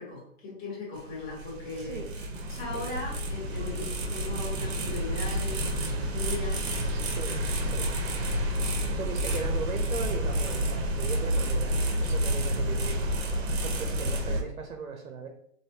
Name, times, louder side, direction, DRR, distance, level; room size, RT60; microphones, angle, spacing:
voice 1, 0.0-2.0 2.5-6.7 9.3-9.4, left 3 dB, 25° left, -6 dB, 1.2 m, -38 dB
sound 1, 1.0-14.4, equal, 50° right, 0.7 m, -29 dB
voice 2, 1.7-2.1 2.7-2.9 7.0-8.4 9.0-13.0 13.6-15.3, right 5 dB, 90° right, 4 dB, 0.7 m, -38 dB
3.3 x 2.5 x 2.7 m, 0.70 s
hypercardioid pair, 130°, 40 cm